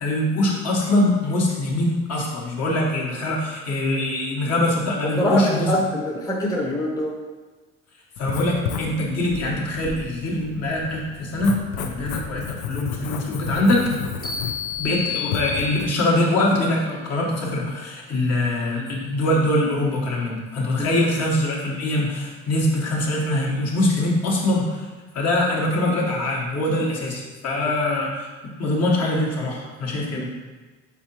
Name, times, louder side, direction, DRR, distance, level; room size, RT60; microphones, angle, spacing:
voice 1, 0.0-5.7 8.2-13.8 14.8-24.9 25.1-28.3 28.6-30.3, left 1 dB, 55° left, -2 dB, 1.1 m, -23 dB
voice 2, 5.2-7.2 30.1-30.3, equal, 10° left, -2 dB, 0.7 m, -24 dB
Writing, 8.2-15.8, left 7 dB, 80° left, 0.5 m, -32 dB
sound 1, 14.2-16.1, left 8 dB, 30° left, 1.1 m, -31 dB
4.2 x 3.6 x 2.9 m, 1.3 s
supercardioid pair, 75°, 32 cm